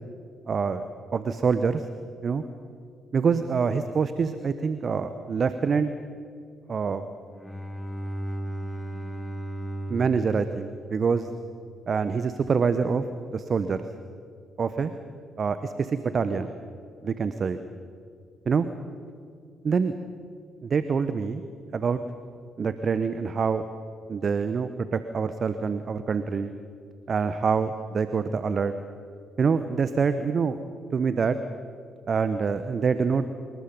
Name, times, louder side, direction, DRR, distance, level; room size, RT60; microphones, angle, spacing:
voice 1, 0.5-0.8 1.1-1.9 2.2-2.4 3.1-5.9 6.7-7.0 9.9-11.3 11.9-13.8 14.6-14.9 15.4-16.5 17.0-17.6 18.5-18.7 19.6-19.9 20.6-21.4 21.7-22.0 22.6-23.6 24.1-26.5 27.1-28.7 29.4-30.6 30.9-31.4 32.1-33.2, right 5 dB, 45° right, 11 dB, 1.0 m, -25 dB
Bowed string instrument, 7.3-11.8, right 1 dB, 5° left, 3.0 m, -36 dB
26.5 x 22.0 x 5.3 m, 2.3 s
figure-of-eight pair, 40°, 0 cm